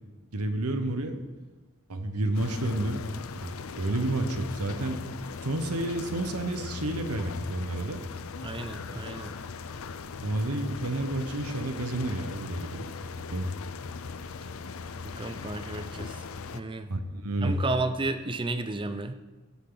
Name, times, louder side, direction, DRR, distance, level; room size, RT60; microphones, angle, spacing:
voice 1, 0.3-1.2 1.9-5.0 5.4-8.0 10.2-12.9 13.3-13.5 16.9-17.6, right 1 dB, 90° right, 7 dB, 1.2 m, -30 dB
sound 1, 2.3-16.6, left 5 dB, 65° left, 0.5 m, -39 dB
voice 2, 8.4-9.4 15.0-16.2 16.5-16.9 17.4-19.1, right 2 dB, 20° right, 9 dB, 0.6 m, -32 dB
15.5 x 8.6 x 4.0 m, 1.2 s
head